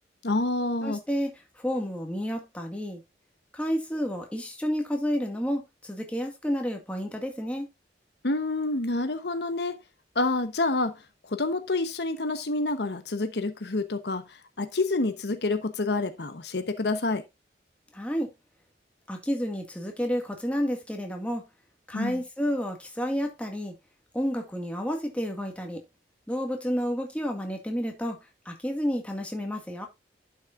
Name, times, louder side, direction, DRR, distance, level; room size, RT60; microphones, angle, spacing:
voice 1, 0.2-1.0 8.2-9.8 10.1-17.2 21.9-22.2, left 2 dB, 70° left, 1.0 m, -28 dB
voice 2, 0.8-3.0 3.5-7.7 17.9-18.3 19.1-21.5 21.9-23.7 24.1-25.8 26.3-28.2 28.5-29.9, equal, 5° left, 2.0 m, -30 dB
11.5 x 6.4 x 2.5 m
head